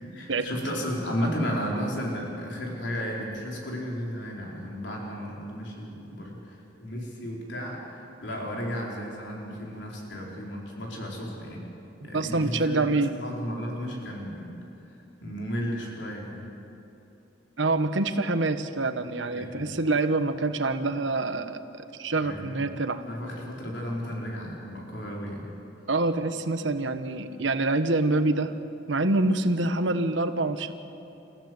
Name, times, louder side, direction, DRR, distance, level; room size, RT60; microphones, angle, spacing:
voice 1, 0.1-11.7 12.0-12.8 13.1-14.5 14.8-16.4 19.3-19.7 22.2-22.6 23.1-25.5, equal, 70° left, -2 dB, 4.6 m, -34 dB
voice 2, 12.1-13.1 17.6-23.0 25.9-28.5 28.9-30.7, right 2 dB, 85° right, 9 dB, 1.2 m, -26 dB
29.5 x 15.0 x 7.9 m, 2.9 s
head